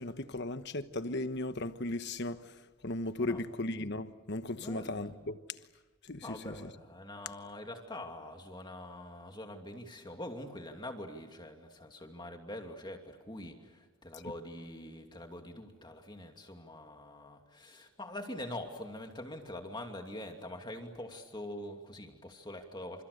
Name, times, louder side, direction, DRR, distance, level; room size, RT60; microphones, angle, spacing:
voice 1, 0.0-2.5 2.8-5.4 6.1-6.7, left 2 dB, 50° left, 1.2 m, -36 dB
voice 2, 4.6-5.3 6.2-23.0, left 1 dB, 20° left, 2.7 m, -44 dB
30.0 x 28.0 x 6.8 m
head